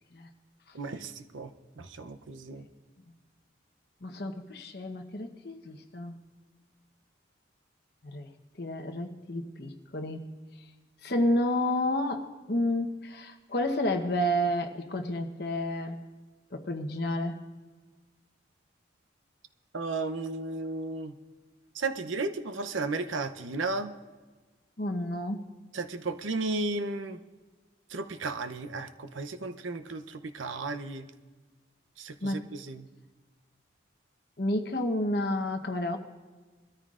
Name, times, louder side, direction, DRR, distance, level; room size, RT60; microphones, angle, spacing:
voice 1, 0.7-1.5 1.8-2.6 19.7-21.1 21.7-23.9 25.7-27.2 27.9-31.1 32.0-32.9, right 3 dB, 90° right, 9 dB, 0.7 m, -34 dB
voice 2, 4.0-6.1 8.0-8.3 8.6-10.2 11.0-16.0 16.5-17.4 24.8-25.5 32.2-32.4 34.4-36.0, left 1 dB, 55° left, 5 dB, 1.0 m, -30 dB
22.0 x 13.5 x 2.5 m, 1.3 s
head